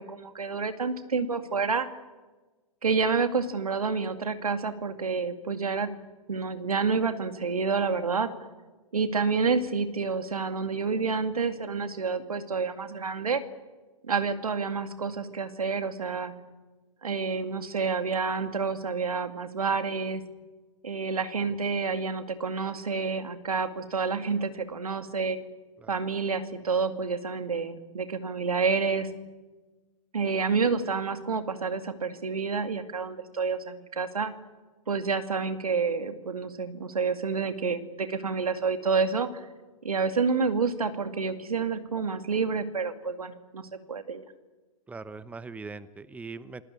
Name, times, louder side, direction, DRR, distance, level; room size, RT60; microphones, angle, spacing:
voice 1, 0.0-1.9 2.8-5.9 6.3-8.3 8.9-13.4 14.0-16.3 17.0-20.2 20.8-25.4 25.9-29.1 30.1-34.3 34.9-39.4 39.8-43.6 43.9-44.2, right 5 dB, 85° right, 9 dB, 2.3 m, -29 dB
voice 2, 44.9-46.6, right 4 dB, 5° right, 16 dB, 0.9 m, -41 dB
28.5 x 19.0 x 8.6 m, 1.2 s
hypercardioid pair, 115°, 18 cm